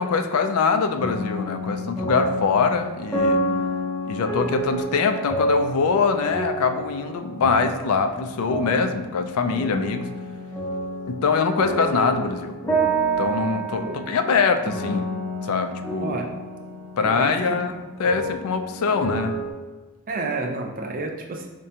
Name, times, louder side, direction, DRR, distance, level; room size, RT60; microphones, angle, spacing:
voice 1, 0.0-3.4 4.1-10.1 11.1-12.6 13.2-15.1 15.4-16.2 17.0-19.4, left 5 dB, 75° left, 7 dB, 0.3 m, -23 dB
sound 1, 0.9-19.5, right 1 dB, 10° left, 0.5 m, -29 dB
voice 2, 17.0-17.6 20.1-21.5, right 3 dB, 40° right, 2 dB, 0.4 m, -30 dB
4.8 x 2.2 x 2.7 m, 1.2 s
head